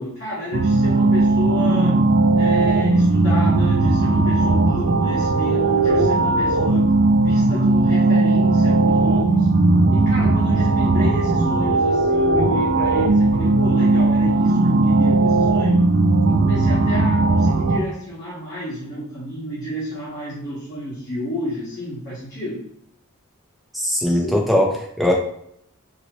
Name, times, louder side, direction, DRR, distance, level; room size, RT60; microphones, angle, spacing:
voice 1, 0.0-2.0 2.4-6.9 7.2-9.5 9.9-15.8 16.2-22.6 24.0-24.2, left 1 dB, 45° left, -8 dB, 1.1 m, -30 dB
sound 1, 0.5-17.8, right 2 dB, 50° right, 0.3 m, -17 dB
voice 2, 23.7-25.1, equal, ahead, -1 dB, 0.6 m, -20 dB
2.8 x 2.7 x 2.9 m, 0.71 s
head